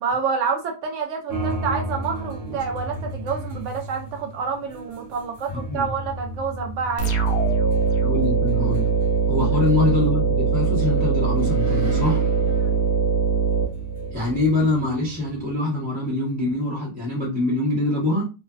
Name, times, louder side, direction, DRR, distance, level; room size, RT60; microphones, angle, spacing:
voice 1, 0.0-7.1 12.5-12.7, right 5 dB, 90° right, 0.6 m, -28 dB
sound 1, 1.3-15.5, right 1 dB, 70° right, 1.2 m, -35 dB
voice 2, 5.5-5.9 8.0-9.0 9.3-12.2 14.1-18.2, left 2 dB, 5° right, 0.6 m, -24 dB
sound 2, 7.0-14.5, right 5 dB, 60° left, 0.8 m, -22 dB
3.2 x 2.1 x 2.3 m
omnidirectional pair, 1.8 m